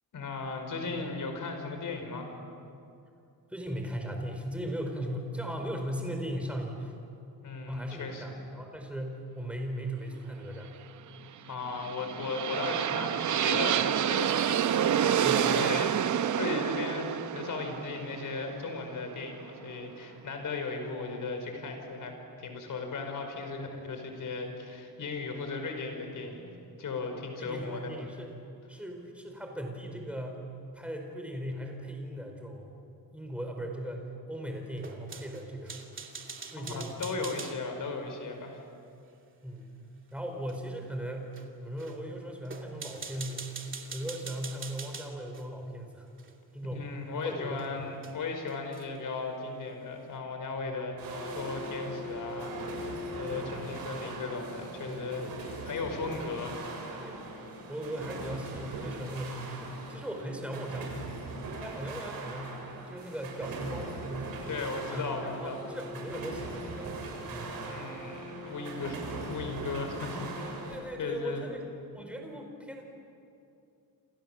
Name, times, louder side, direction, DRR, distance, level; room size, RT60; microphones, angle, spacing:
voice 1, 0.1-2.3 7.4-8.4 11.5-14.4 15.3-26.5 26.8-27.9 36.6-38.6 46.7-56.8 64.5-65.6 67.7-69.0 69.3-70.6 71.0-71.4, left 4 dB, 55° left, 4 dB, 5.2 m, -36 dB
voice 2, 3.5-6.9 7.7-10.7 15.2-15.7 26.2-26.5 27.3-28.3 28.7-30.5 30.7-32.7 33.1-35.8 36.5-37.0 39.4-39.7 40.1-46.1 46.5-47.0 47.2-48.0 50.5-50.6 53.4-53.7 54.9-55.3 57.0-57.2 57.7-61.3 61.6-64.6 64.9-66.9 67.3-67.6 70.7-71.7 71.9-72.9, equal, 5° right, 2 dB, 4.5 m, -38 dB
sound 1, 11.6-19.6, right 9 dB, 50° right, 0.8 m, -28 dB
sound 2, 34.8-37.6 40.5-40.6 41.3-41.5 41.8-42.0 42.5-45.5 46.2-46.3 47.6-47.7 48.0-48.1 48.5-49.0, right 5 dB, 30° right, 2.6 m, -43 dB
sound 3, 51.0-70.8, right 2 dB, 70° right, 7.3 m, -40 dB
28.5 x 28.5 x 7.4 m, 2.6 s
wide cardioid pair, 160°, 37 cm